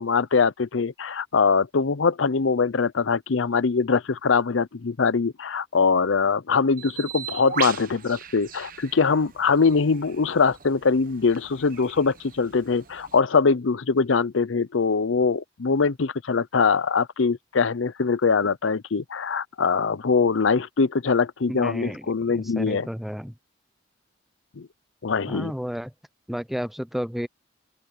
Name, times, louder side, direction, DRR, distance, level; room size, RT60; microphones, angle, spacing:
voice 1, 0.0-22.9 24.6-24.7 25.0-25.5, left 5 dB, 85° left, 0.6 m, -22 dB
Bird, 6.8-13.2, right 8 dB, 45° right, 1.1 m, -39 dB
voice 2, 21.5-23.3 25.3-25.9 26.3-27.3, equal, ahead, 0.8 m, -32 dB
open air
head